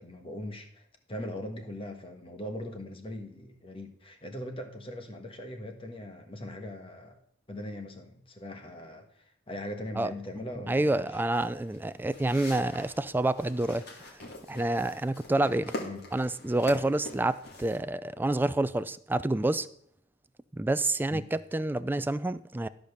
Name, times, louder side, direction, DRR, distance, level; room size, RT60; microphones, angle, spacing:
voice 1, 0.0-7.2 7.5-11.2 15.8-16.0 21.1-21.2, left 1 dB, 30° left, 1.3 m, -40 dB
voice 2, 10.4-13.9 14.5-15.7 16.1-19.7 20.5-22.7, right 2 dB, 10° right, 0.3 m, -28 dB
sound 1, 11.3-17.8, left 2 dB, 55° left, 2.4 m, -43 dB
13.0 x 5.2 x 6.5 m
head